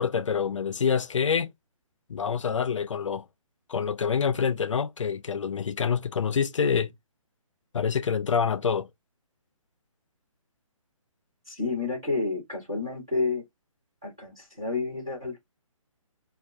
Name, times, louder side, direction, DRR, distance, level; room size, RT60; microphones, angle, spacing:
voice 1, 0.0-1.5 2.1-3.3 3.7-6.9 7.7-8.9, left 6 dB, 60° left, 0.4 m, -26 dB
voice 2, 11.5-13.4 14.0-15.4, left 3 dB, 10° right, 0.4 m, -30 dB
2.7 x 2.3 x 3.3 m
hypercardioid pair, 175°, 18 cm